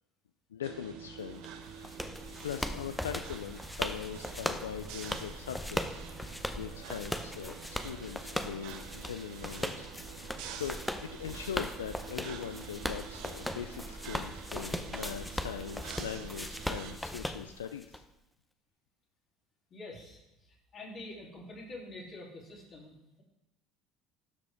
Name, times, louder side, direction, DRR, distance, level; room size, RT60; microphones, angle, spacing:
voice 1, 0.5-2.0 2.4-9.9 10.2-18.0, left 8 dB, 90° left, 7 dB, 0.3 m, -41 dB
zuchtende pompende kronos, 0.6-17.0, right 8 dB, 70° right, 0.9 m, -47 dB
sound 1, 1.4-18.0, left 1 dB, 10° left, 0.7 m, -39 dB
voice 2, 19.7-20.2 20.5-23.2, left 2 dB, 45° left, -3 dB, 3.1 m, -46 dB
12.5 x 5.2 x 3.5 m, 0.95 s
hypercardioid pair, 70°, 0 cm